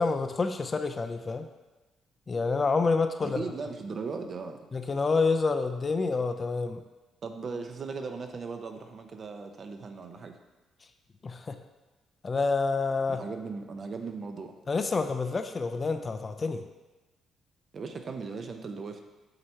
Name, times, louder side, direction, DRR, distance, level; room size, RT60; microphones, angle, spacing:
voice 1, 0.0-1.5 2.3-3.4 4.7-6.8 11.2-11.6 12.2-13.2 14.7-16.6, left 4 dB, 35° left, 8 dB, 0.4 m, -28 dB
voice 2, 3.2-4.6 7.2-10.3 13.1-14.5 17.7-19.0, right 4 dB, 45° right, 6 dB, 0.6 m, -37 dB
7.8 x 2.9 x 4.4 m, 1.1 s
cardioid pair, 90°, 0 cm